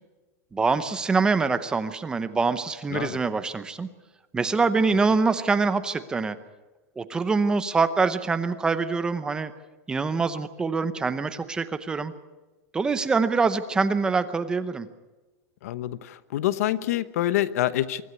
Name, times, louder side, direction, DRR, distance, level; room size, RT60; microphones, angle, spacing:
voice 1, 0.5-3.9 4.3-6.4 7.0-9.5 9.9-12.1 12.7-14.9, right 4 dB, 10° right, 11 dB, 0.8 m, -24 dB
voice 2, 15.6-18.0, left 13 dB, 70° left, 15 dB, 1.0 m, -26 dB
24.0 x 14.0 x 9.6 m, 1.2 s
supercardioid pair, 175°, 9 cm